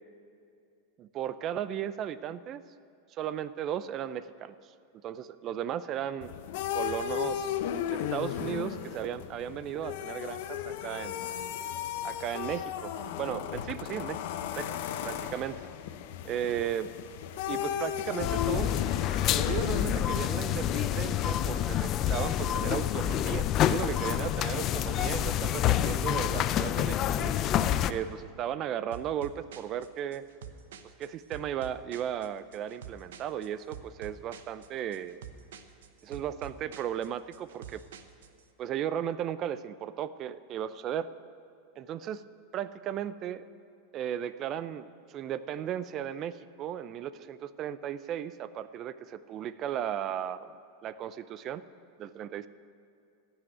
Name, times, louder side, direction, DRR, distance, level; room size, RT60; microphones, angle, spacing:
voice 1, 1.0-2.6 3.1-4.5 5.0-6.3 6.7-7.5 7.9-11.3 12.0-14.2 14.6-14.7 15.0-15.7 16.2-16.9 17.5-18.7 19.3-27.3 27.9-30.2 31.0-35.2 36.0-37.8 38.6-41.1 41.8-42.2 42.5-43.4 43.9-50.5 50.8-51.6 52.0-52.5, right 10 dB, 40° right, 15 dB, 0.5 m, -35 dB
sound 1, 6.2-20.3, left 10 dB, 65° left, 0.8 m, -35 dB
sound 2, 18.2-27.9, left 11 dB, 40° left, 0.5 m, -28 dB
sound 3, 28.9-38.4, right 7 dB, 80° right, 0.9 m, -48 dB
14.5 x 6.3 x 9.3 m, 2.6 s
supercardioid pair, 120°, 0 cm